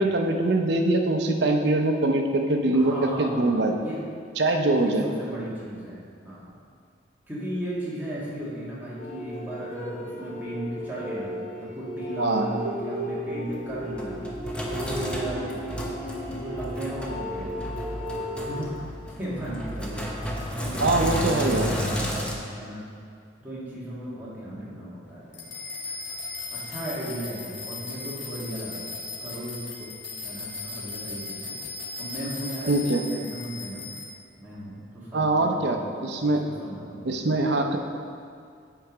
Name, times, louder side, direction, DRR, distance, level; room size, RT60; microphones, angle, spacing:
voice 1, 0.0-3.7 4.4-5.0 12.2-12.5 20.8-21.7 32.7-33.0 35.1-36.4 37.1-37.8, right 2 dB, 60° right, 4 dB, 0.6 m, -23 dB
voice 2, 2.7-4.0 4.6-6.6 7.3-14.2 14.8-15.6 16.3-17.7 18.4-18.8 19.2-20.1 20.6-22.9 23.4-25.5 26.5-29.9 30.2-31.6 32.0-33.9 34.4-37.3, right 1 dB, 10° right, -8 dB, 1.6 m, -36 dB
sound 1, 9.0-18.6, equal, 35° left, 1.1 m, -35 dB
Sink (filling or washing), 13.5-22.3, equal, 5° left, 0.6 m, -32 dB
sound 2, 25.3-34.0, left 3 dB, 65° left, 1.2 m, -37 dB
7.9 x 4.5 x 4.9 m, 2.3 s
head